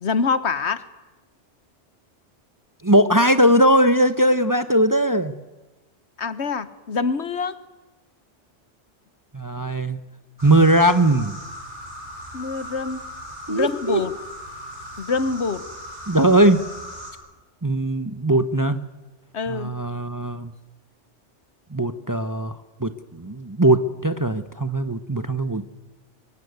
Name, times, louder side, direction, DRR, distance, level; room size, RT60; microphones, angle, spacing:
voice 1, 0.0-0.8 6.2-7.6 12.3-13.1 13.5-14.1 15.0-15.7 19.3-19.8, left 5 dB, 70° left, 14 dB, 1.4 m, -25 dB
voice 2, 2.8-5.4 9.3-10.0 10.4-11.4 13.5-14.0 16.1-16.6 17.6-18.8 19.5-20.5 21.7-25.7, right 1 dB, 20° right, 11 dB, 0.8 m, -19 dB
sound 1, 10.4-17.1, equal, 75° right, 6.1 m, -38 dB
23.5 x 22.0 x 9.4 m, 1.1 s
omnidirectional pair, 1.2 m